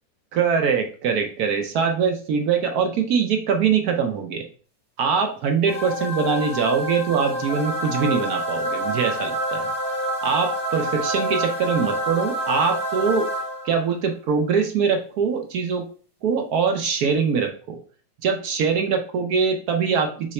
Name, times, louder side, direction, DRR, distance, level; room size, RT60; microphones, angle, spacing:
voice 1, 0.3-4.4 5.0-9.7 10.2-13.3 13.6-15.9 16.2-17.8 18.2-20.3, right 6 dB, 70° right, 5 dB, 1.0 m, -23 dB
sound 1, 5.7-13.9, equal, 5° left, 0.8 m, -27 dB
4.7 x 2.1 x 4.2 m, 0.40 s
omnidirectional pair, 2.0 m